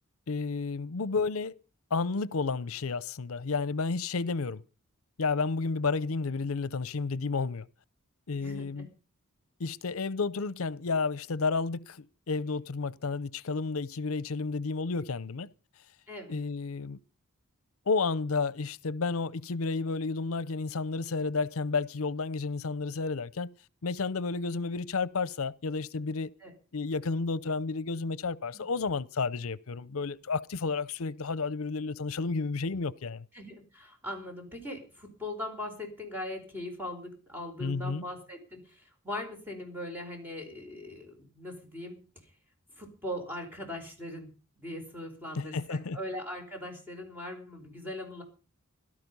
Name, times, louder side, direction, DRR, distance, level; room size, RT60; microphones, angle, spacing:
voice 1, 0.3-1.6 1.9-4.6 5.2-7.7 8.3-8.9 9.6-15.5 16.3-17.0 17.9-23.5 23.8-26.3 26.7-33.3 37.6-38.0 45.4-46.0, left 4 dB, 75° left, 0.7 m, -31 dB
voice 2, 8.4-8.9 16.1-16.3 26.4-26.5 28.5-28.6 33.3-42.3 42.8-44.3 44.6-48.2, left 1 dB, 10° right, 4.7 m, -40 dB
17.5 x 12.5 x 5.4 m
head